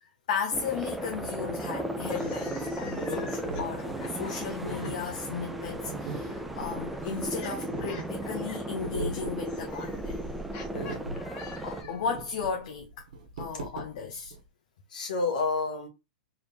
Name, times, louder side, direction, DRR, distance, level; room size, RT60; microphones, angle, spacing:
voice 1, 0.0-10.2 11.6-13.1 13.4-14.3, left 6 dB, 65° left, 0.8 m, -35 dB
sound 1, 0.5-11.8, right 1 dB, 5° right, 0.6 m, -35 dB
sound 2, 2.0-5.2 6.3-12.1, left 5 dB, 45° left, 1.4 m, -48 dB
voice 2, 3.0-3.3 10.7-11.0 14.9-15.9, left 3 dB, 85° left, 1.6 m, -30 dB
sound 3, 3.5-14.4, right 3 dB, 75° right, 1.2 m, -40 dB
3.9 x 3.4 x 2.4 m
hypercardioid pair, 125°, 4 cm